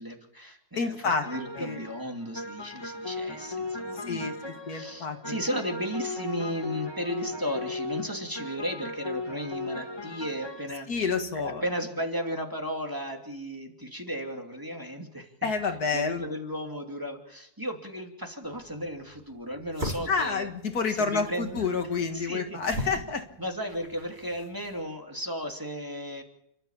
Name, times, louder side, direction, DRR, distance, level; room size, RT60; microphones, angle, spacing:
voice 1, 0.0-4.3 4.7-10.9 11.3-15.3 15.9-20.5 21.0-21.6 22.1-23.0 23.4-26.2, equal, 15° right, 2 dB, 2.6 m, -35 dB
voice 2, 0.8-1.3 1.6-1.8 3.9-5.4 10.9-11.6 15.4-16.3 20.1-23.3, left 5 dB, 80° left, 6 dB, 2.3 m, -29 dB
sound 1, 1.2-10.7, left 3 dB, 15° left, 1.3 m, -37 dB
sound 2, 18.4-24.8, equal, 40° right, 4.1 m, -40 dB
30.0 x 12.5 x 7.2 m, 0.78 s
omnidirectional pair, 1.6 m